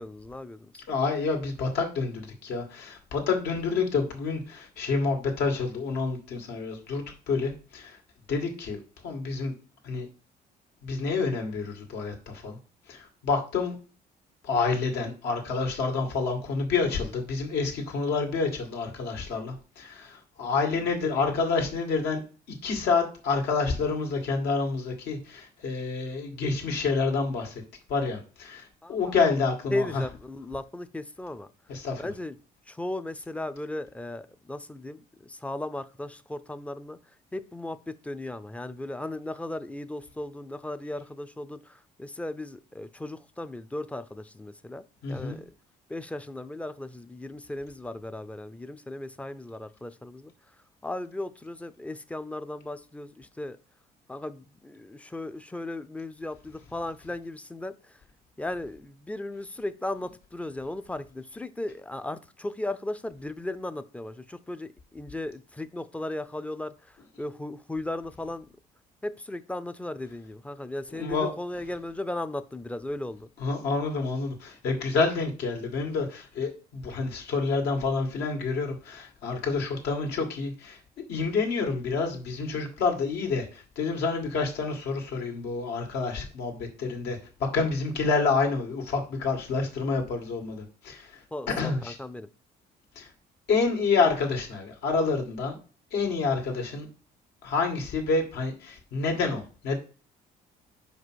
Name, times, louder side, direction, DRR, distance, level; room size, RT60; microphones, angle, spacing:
voice 1, 0.0-0.8 28.8-29.1 29.7-31.5 32.0-32.3 32.7-37.0 37.3-44.8 45.1-45.5 45.9-50.3 50.8-53.6 54.1-58.0 58.4-68.5 69.0-73.3 91.3-92.3, left 1 dB, 10° left, 0.5 m, -36 dB
voice 2, 0.9-8.0 8.3-9.5 9.8-10.1 10.8-12.6 12.9-13.8 14.4-22.2 22.5-27.6 27.9-30.0 31.7-32.0 45.0-45.4 70.9-71.3 73.4-80.8 81.1-91.2 91.6-92.0 93.0-93.1 93.5-95.6 95.9-96.9 97.4-99.8, left 4 dB, 75° left, 2.2 m, -28 dB
5.0 x 4.9 x 6.3 m
cardioid pair, 110°, 17 cm